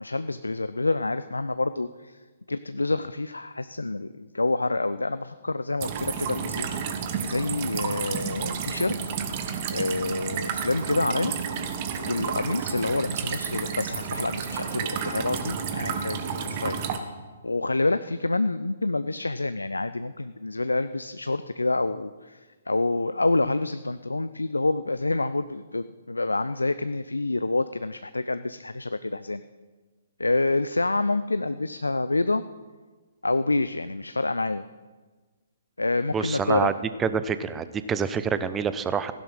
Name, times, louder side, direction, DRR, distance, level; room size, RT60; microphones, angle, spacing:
voice 1, 0.0-2.2 2.5-6.7 7.2-9.2 9.7-11.3 11.9-17.1 17.4-29.4 30.2-32.4 33.2-34.6 35.8-36.7, left 2 dB, 75° left, 13 dB, 0.4 m, -27 dB
sound 1, 5.8-17.0, right 7 dB, 35° right, 1.2 m, -31 dB
voice 2, 36.1-36.7 37.0-39.1, right 6 dB, 15° right, 13 dB, 0.6 m, -27 dB
15.5 x 11.0 x 5.7 m, 1.4 s
figure-of-eight pair, 125°, 0 cm